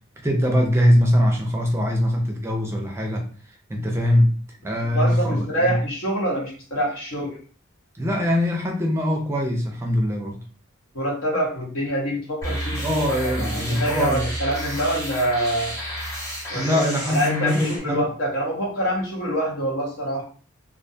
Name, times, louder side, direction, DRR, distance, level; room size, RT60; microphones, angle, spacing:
voice 1, 0.2-3.2 3.7-4.4 4.6-5.8 7.9-10.4 12.8-14.2 16.5-18.1, equal, 15° right, 1 dB, 0.4 m, -22 dB
voice 2, 4.9-7.4 10.9-15.8 16.5-16.8 17.1-20.3, right 1 dB, 75° left, -2 dB, 1.1 m, -25 dB
sound 1, 12.4-17.8, equal, 15° left, 1.1 m, -31 dB
2.5 x 2.2 x 2.6 m, 0.40 s
head